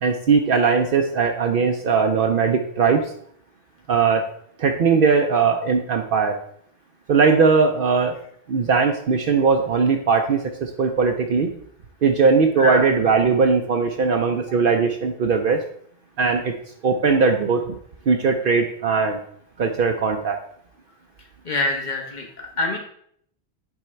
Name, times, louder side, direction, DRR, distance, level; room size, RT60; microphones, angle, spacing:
voice 1, 0.0-3.1 3.9-4.2 4.6-6.4 7.1-8.2 8.5-11.5 12.0-15.6 16.2-16.5 16.8-17.7 18.1-19.2 19.6-20.4, right 5 dB, 60° right, 4 dB, 0.8 m, -19 dB
voice 2, 21.4-22.8, left 2 dB, 45° left, 2 dB, 1.4 m, -25 dB
8.3 x 3.7 x 4.3 m, 0.66 s
omnidirectional pair, 1.1 m